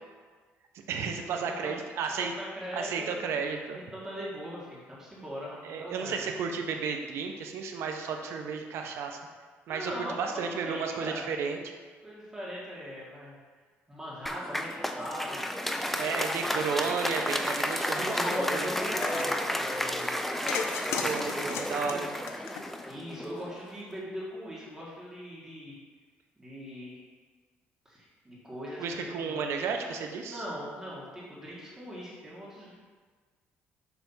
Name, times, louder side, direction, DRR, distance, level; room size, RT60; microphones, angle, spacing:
voice 1, 0.9-2.3 2.7-3.8 5.6-9.2 9.7-11.7 15.9-18.7 21.0-22.2 28.8-30.4, right 5 dB, 70° right, 3 dB, 0.9 m, -33 dB
voice 2, 2.2-3.4 3.7-6.2 9.7-11.3 12.0-13.4 13.9-15.4 15.9-16.8 17.8-20.2 20.8-21.1 22.5-25.7 26.4-26.9 27.9-29.5 30.2-32.7, equal, 10° right, -6 dB, 2.0 m, -40 dB
Applause, 14.3-23.6, left 1 dB, 5° left, 0.4 m, -32 dB
sound 1, 18.8-19.3 20.5-23.0, left 6 dB, 85° left, 0.6 m, -35 dB
7.1 x 3.5 x 5.6 m, 1.5 s
cardioid pair, 115°, 5 cm